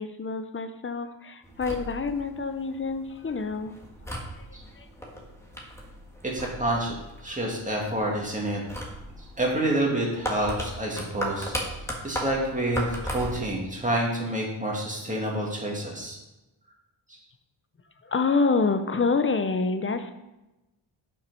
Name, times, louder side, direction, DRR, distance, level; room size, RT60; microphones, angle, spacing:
voice 1, 0.0-3.8 4.8-4.9 18.0-20.1, left 4 dB, 25° left, 9 dB, 0.6 m, -27 dB
sound 1, 1.4-13.6, equal, 5° left, 1.4 m, -37 dB
voice 2, 6.2-6.9 7.2-8.6 9.4-11.5 12.0-16.2, right 1 dB, 15° right, -2 dB, 2.1 m, -28 dB
7.4 x 5.9 x 5.5 m, 0.99 s
wide cardioid pair, 135°, 49 cm